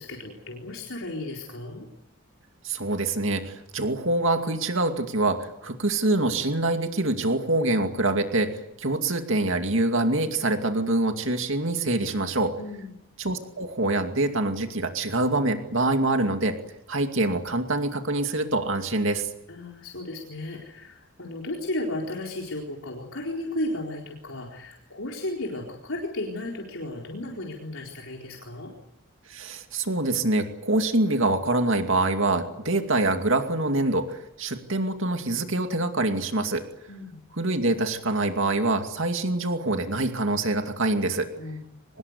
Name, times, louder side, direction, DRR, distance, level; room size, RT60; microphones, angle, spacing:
voice 1, 0.0-1.9 12.6-12.9 19.5-28.7 36.9-37.2 41.4-41.7, left 1 dB, 65° left, -1 dB, 4.2 m, -34 dB
voice 2, 2.6-12.5 13.2-16.6 16.9-19.3 29.3-36.6 37.3-41.3, right 2 dB, 60° right, 5 dB, 2.5 m, -25 dB
25.0 x 20.5 x 8.2 m, 0.84 s
head